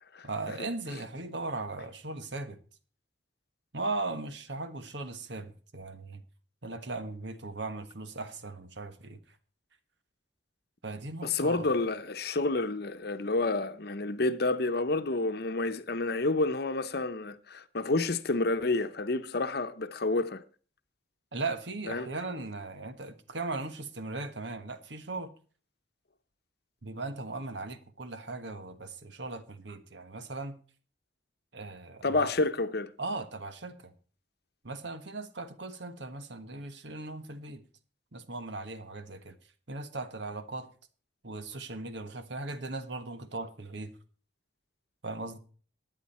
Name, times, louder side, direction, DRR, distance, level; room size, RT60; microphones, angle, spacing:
voice 1, 0.2-2.6 3.7-6.2 6.6-9.2 10.8-11.7 21.3-25.3 26.8-30.6 31.5-32.3 33.0-33.9 34.6-37.6 38.1-39.3 39.7-40.7 41.2-43.9 45.0-45.4, right 3 dB, 70° right, 1.4 m, -38 dB
voice 2, 11.2-20.4 21.9-22.1 32.0-32.9, left 2 dB, 55° left, 0.9 m, -29 dB
15.5 x 9.9 x 4.3 m
head